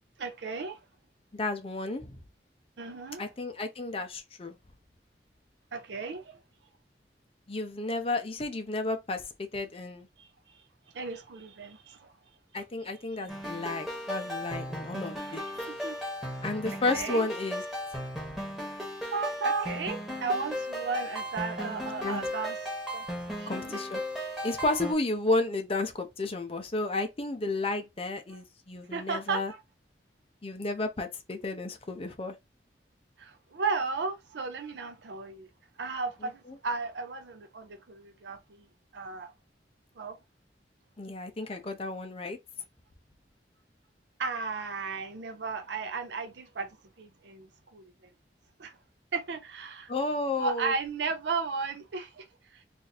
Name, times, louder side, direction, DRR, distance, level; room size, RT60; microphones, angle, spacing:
voice 1, 0.2-0.8 2.8-3.2 5.7-6.4 10.2-10.3 10.9-12.1 15.2-16.4 16.7-17.3 19.1-22.6 22.9-23.7 28.3-28.4 28.9-29.6 33.2-35.5 35.8-38.6 38.9-39.3 40.0-40.2 41.4-41.6 44.2-46.7 47.0-47.8 48.6-48.8 49.1-49.9 50.4-52.2 52.5-52.6, right 4 dB, 80° right, 0.6 m, -35 dB
voice 2, 1.3-2.2 3.2-4.6 7.5-10.1 12.5-15.4 16.4-17.6 22.0-22.2 23.5-24.0 24.4-29.5 30.4-32.4 36.5-36.6 41.0-42.4 49.9-50.7, left 2 dB, 35° left, 0.6 m, -32 dB
sound 1, 13.3-24.9, equal, ahead, 1.1 m, -36 dB
2.6 x 2.5 x 4.0 m
head